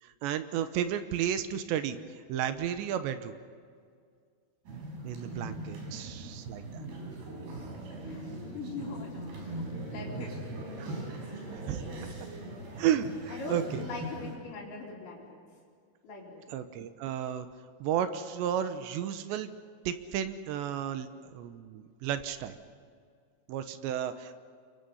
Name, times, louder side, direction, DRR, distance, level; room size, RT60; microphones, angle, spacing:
voice 1, 0.0-3.4 5.0-6.8 10.8-11.0 11.5-11.8 12.8-13.9 16.5-17.5 17.8-19.5 19.9-21.1 21.3-22.5 23.5-24.3, right 10 dB, 75° right, 10 dB, 2.9 m, -33 dB
sound 1, 4.7-14.3, right 1 dB, 55° right, 6.3 m, -40 dB
voice 2, 8.1-10.4 13.3-15.4 16.0-16.4, left 3 dB, 65° left, -8 dB, 6.1 m, -42 dB
28.5 x 24.0 x 5.6 m, 2.1 s
omnidirectional pair, 5.7 m